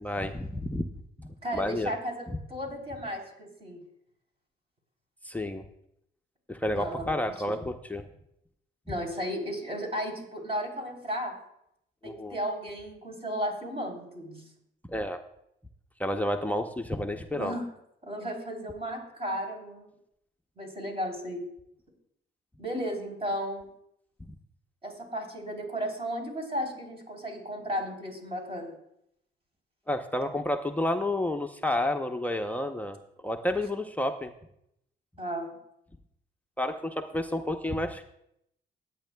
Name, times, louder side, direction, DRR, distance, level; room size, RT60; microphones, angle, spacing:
voice 1, 0.0-0.9 1.2-1.9 2.3-2.4 5.2-5.6 6.5-8.0 12.0-12.4 14.9-15.2 16.0-17.6 24.3-24.4 29.9-33.0 33.2-34.3 36.6-38.0, left 1 dB, 10° left, 4 dB, 0.7 m, -30 dB
voice 2, 1.4-2.2 2.5-3.8 6.7-7.2 7.5-7.6 8.9-11.3 12.0-14.4 17.3-17.7 18.0-19.9 20.6-21.4 22.6-23.6 24.8-28.7 35.2-35.5, equal, 30° right, 1 dB, 3.6 m, -34 dB
21.0 x 9.2 x 2.2 m, 0.76 s
cardioid pair, 90°, 20 cm